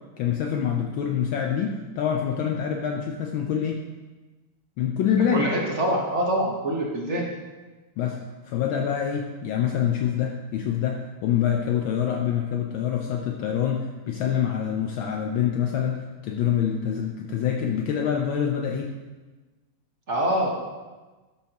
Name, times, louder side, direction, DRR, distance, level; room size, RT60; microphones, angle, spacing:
voice 1, 0.2-3.8 4.8-5.5 8.0-8.2 8.5-19.0, left 8 dB, 75° left, 3 dB, 1.3 m, -26 dB
voice 2, 5.3-7.3 20.1-20.5, right 1 dB, 40° right, -2 dB, 1.3 m, -25 dB
12.5 x 7.4 x 2.9 m, 1.2 s
omnidirectional pair, 2.4 m